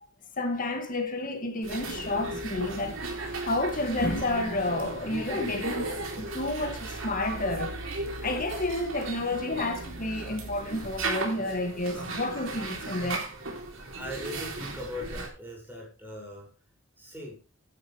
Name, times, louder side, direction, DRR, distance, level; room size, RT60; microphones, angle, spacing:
voice 1, 0.4-5.9 6.2-7.7 8.2-13.3, left 2 dB, 45° left, 2.4 m, -30 dB
sound 1, 1.6-15.3, right 2 dB, 90° right, 3.8 m, -36 dB
voice 2, 13.9-16.5 17.0-17.4, left 1 dB, 10° right, 6.8 m, -40 dB
14.5 x 11.5 x 3.5 m
head